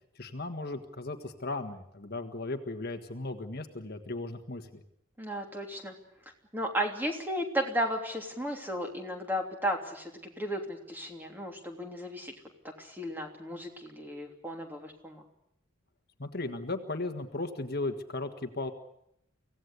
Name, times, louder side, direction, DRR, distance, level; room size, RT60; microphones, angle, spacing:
voice 1, 0.1-4.8 16.2-18.7, left 2 dB, 45° left, 6 dB, 1.6 m, -36 dB
voice 2, 5.2-6.0 6.5-12.3 12.8-15.2, equal, 10° right, 3 dB, 3.1 m, -34 dB
25.0 x 17.0 x 8.3 m, 0.79 s
head